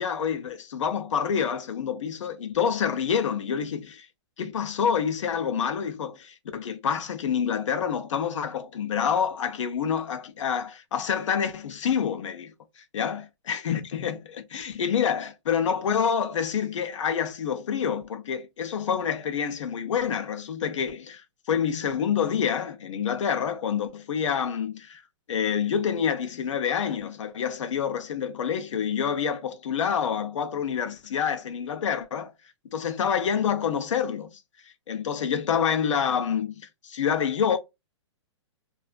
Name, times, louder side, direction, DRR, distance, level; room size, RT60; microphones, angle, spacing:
voice 1, 0.0-4.1 4.4-12.5 12.9-25.0 25.3-32.3 32.7-34.4 34.9-36.5 36.8-37.6, left 7 dB, 85° left, 0.5 m, -27 dB
2.4 x 2.3 x 2.2 m
hypercardioid pair, 150°, 16 cm